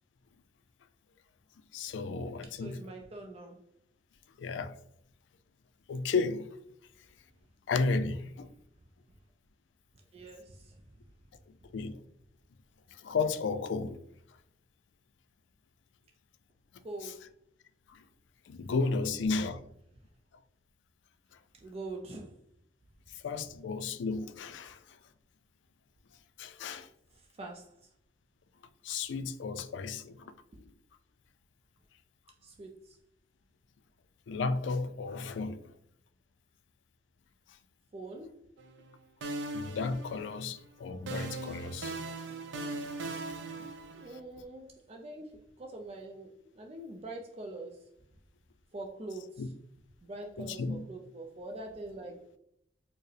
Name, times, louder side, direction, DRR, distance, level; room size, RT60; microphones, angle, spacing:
voice 1, 1.7-2.8 4.4-4.8 5.9-6.5 7.7-8.5 11.7-12.0 12.9-14.0 17.0-17.1 17.9-18.0 18.5-19.6 23.2-25.0 26.4-26.9 28.8-30.3 34.3-35.7 39.5-42.0 43.6-43.7 44.1-44.2 49.4-49.5 50.4-50.8, left 4 dB, 90° left, 0.4 m, -33 dB
voice 2, 2.4-3.6 10.1-10.7 16.8-17.3 21.6-22.4 27.1-27.7 32.4-33.0 37.9-38.4 43.9-47.8 48.7-49.4 50.0-52.2, right 2 dB, 35° right, 0.4 m, -44 dB
sound 1, 38.6-38.9 39.2-40.6 41.1-44.2, right 2 dB, 90° right, 0.5 m, -39 dB
4.5 x 2.0 x 3.2 m
head